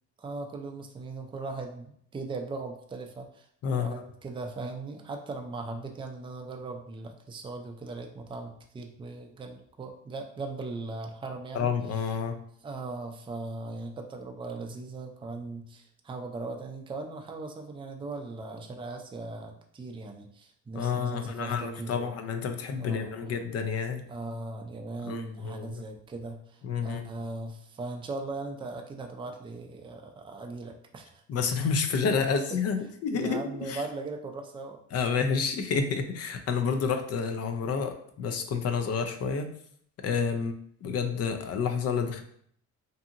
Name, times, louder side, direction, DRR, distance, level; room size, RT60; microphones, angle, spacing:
voice 1, 0.2-12.0 12.6-22.2 22.8-23.3 24.1-31.2 33.1-34.8 40.3-40.5, right 3 dB, 15° right, 3 dB, 0.4 m, -39 dB
voice 2, 3.6-4.0 11.5-12.4 20.7-24.0 25.0-25.8 26.6-27.0 31.3-33.8 34.9-39.5 40.0-40.5 40.8-42.2, left 5 dB, 55° left, 7 dB, 0.5 m, -29 dB
2.7 x 2.6 x 2.5 m, 0.65 s
cardioid pair, 90°, 30 cm